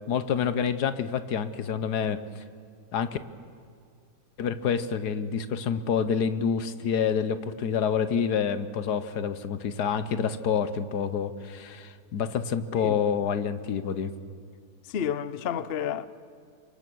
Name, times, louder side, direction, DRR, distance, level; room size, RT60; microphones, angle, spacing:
voice 1, 0.1-2.4 2.9-3.2 4.4-14.1, left 7 dB, 75° left, 1.5 m, -28 dB
voice 2, 14.9-16.1, left 8 dB, 50° left, 0.7 m, -30 dB
27.0 x 23.5 x 6.2 m
omnidirectional pair, 1.8 m